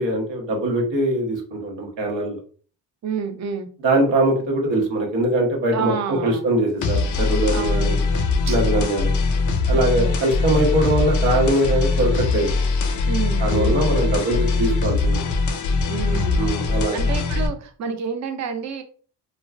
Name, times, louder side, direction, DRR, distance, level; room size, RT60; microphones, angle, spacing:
voice 1, 0.0-2.4 3.8-8.0 8.5-9.1 9.7-12.5 13.4-15.2 16.3-17.0, right 1 dB, 85° right, 1 dB, 1.1 m, -22 dB
voice 2, 3.0-3.7 5.7-6.5 7.5-8.1 8.4-8.6 9.7-10.1 13.1-13.9 15.9-18.8, right 6 dB, 40° right, 7 dB, 0.5 m, -29 dB
sound 1, 6.8-17.5, left 4 dB, 45° left, 0.5 m, -21 dB
2.3 x 2.3 x 3.2 m, 0.43 s
cardioid pair, 145°, 43 cm